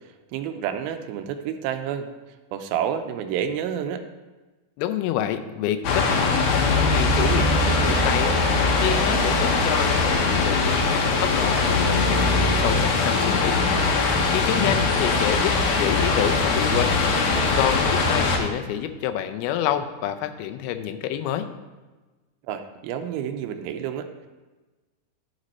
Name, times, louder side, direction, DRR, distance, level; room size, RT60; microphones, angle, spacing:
voice 1, 0.3-2.1 2.5-4.0 22.4-24.3, right 9 dB, 85° right, 8 dB, 2.4 m, -29 dB
voice 2, 4.8-13.6 14.3-16.9 17.6-21.5, left 11 dB, 85° left, 9 dB, 2.5 m, -28 dB
sound 1, 5.8-18.4, left 3 dB, 70° left, 2.0 m, -21 dB
11.5 x 5.2 x 4.2 m, 1.2 s
omnidirectional pair, 4.3 m